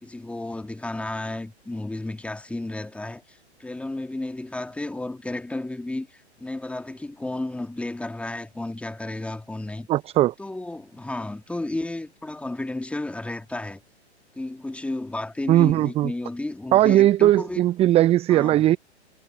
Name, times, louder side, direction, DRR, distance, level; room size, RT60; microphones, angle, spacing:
voice 1, 0.0-9.9 10.4-13.8 14.4-17.6 18.3-18.6, left 2 dB, 5° left, 2.4 m, -32 dB
voice 2, 9.9-10.3 15.5-16.1 16.7-18.8, right 14 dB, 15° right, 0.8 m, -18 dB
figure-of-eight pair, 110°, 34 cm